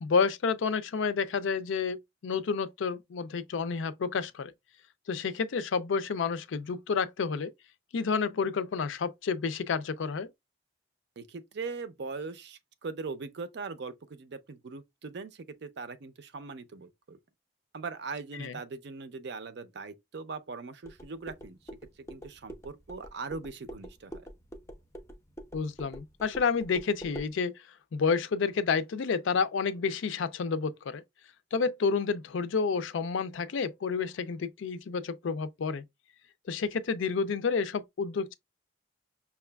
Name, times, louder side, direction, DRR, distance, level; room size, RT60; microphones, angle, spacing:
voice 1, 0.0-4.5 5.1-7.5 7.9-10.3 18.4-18.5 25.5-27.5 27.9-31.0 31.5-35.8 36.5-38.3, left 5 dB, 75° left, 0.4 m, -30 dB
voice 2, 11.2-17.2 17.7-21.6 22.1-24.2, right 4 dB, 60° right, 0.5 m, -40 dB
sound 1, 20.8-27.3, right 1 dB, 15° left, 0.5 m, -46 dB
5.6 x 2.3 x 2.2 m
head